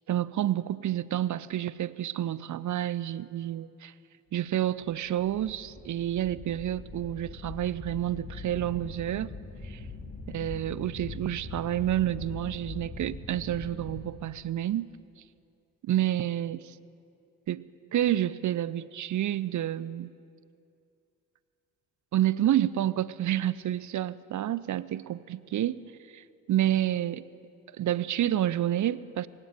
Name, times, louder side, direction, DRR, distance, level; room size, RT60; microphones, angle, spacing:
voice 1, 0.1-3.9 4.3-9.3 9.6-9.8 10.3-15.0 15.8-16.6 17.5-17.6 17.9-20.1 22.1-27.2 27.8-29.3, right 12 dB, 50° right, 0.6 m, -29 dB
sound 1, 4.8-14.0, left 3 dB, 25° left, 2.5 m, -42 dB
24.5 x 9.6 x 5.1 m
hypercardioid pair, 45°, 39 cm